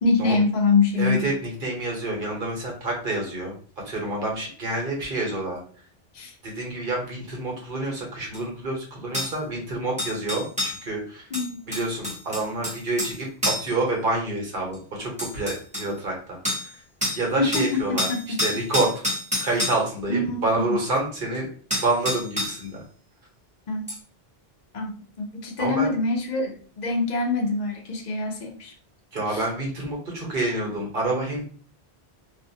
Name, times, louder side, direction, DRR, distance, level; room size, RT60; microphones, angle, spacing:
voice 1, 0.0-1.3 6.1-6.3 11.3-11.6 17.4-17.7 18.1-18.4 20.1-20.8 23.7-23.9 24.7-24.8 25.2-28.7 29.3-29.4, left 3 dB, 50° left, 1 dB, 0.7 m, -24 dB
voice 2, 0.9-3.5 3.8-5.6 6.4-11.2 11.7-16.7 17.1-18.1 18.4-18.9 19.4-21.5 21.8-22.8 25.6-25.9 29.1-31.4, right 2 dB, 55° right, 0 dB, 1.1 m, -28 dB
sound 1, 8.3-8.4 9.1-9.3 10.0-10.8 11.3-13.2 13.4-13.7 14.7-14.8 15.2-15.9 16.5-16.7 17.0-17.2 17.5-19.8 21.3-21.4 21.7-22.6 23.9-24.0, left 1 dB, 5° right, 1.0 m, -28 dB
2.5 x 2.3 x 2.6 m, 0.43 s
omnidirectional pair, 1.1 m